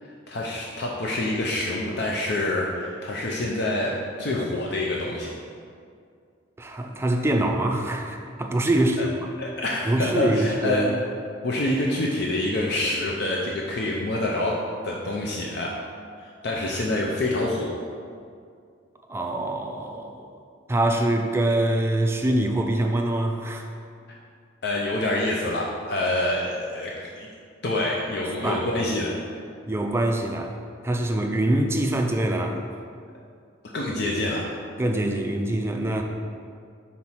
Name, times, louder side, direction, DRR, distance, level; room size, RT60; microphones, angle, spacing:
voice 1, 0.0-5.3 9.0-9.1 9.4-10.9 11.4-15.7 16.2-17.8 24.6-27.3 27.6-29.1 33.7-34.5, left 1 dB, 55° left, -3 dB, 0.6 m, -26 dB
voice 2, 6.6-9.3 9.9-10.9 19.1-20.3 20.7-23.7 28.4-28.7 29.7-30.5 30.8-32.6 34.8-36.0, right 1 dB, 15° right, 3 dB, 0.4 m, -24 dB
4.5 x 4.2 x 5.6 m, 2.2 s
head